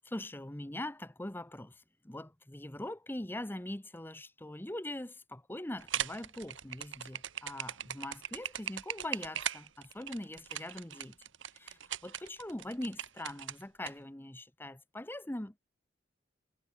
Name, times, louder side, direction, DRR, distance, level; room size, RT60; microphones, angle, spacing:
voice 1, 0.0-1.7 2.0-11.1 11.5-15.6, left 1 dB, 10° left, 0.9 m, -42 dB
sound 1, 5.8-13.9, right 10 dB, 80° right, 1.8 m, -39 dB
head